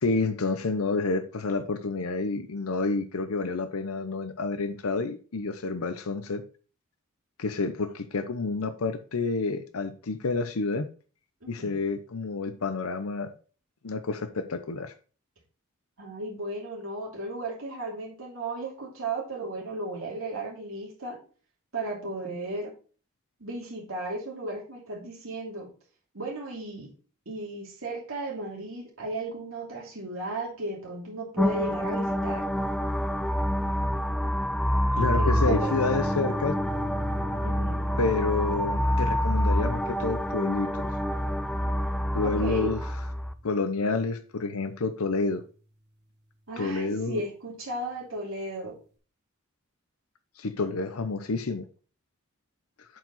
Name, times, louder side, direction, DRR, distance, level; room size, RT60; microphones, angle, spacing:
voice 1, 0.0-6.4 7.4-10.9 11.5-13.3 13.8-14.9 35.0-36.5 38.0-40.9 42.1-42.8 43.4-45.4 46.6-47.2 50.4-51.7, left 3 dB, 85° left, 0.7 m, -29 dB
voice 2, 11.4-11.7 16.0-21.2 21.7-22.7 23.4-25.7 26.1-26.9 27.3-32.5 35.1-35.8 37.4-37.8 42.2-42.7 46.5-48.8, right 2 dB, 75° right, 2.7 m, -35 dB
sound 1, 31.4-43.3, equal, 5° left, 0.3 m, -27 dB
sound 2, 35.0-43.5, equal, 50° right, 1.2 m, -38 dB
7.9 x 4.8 x 4.1 m
head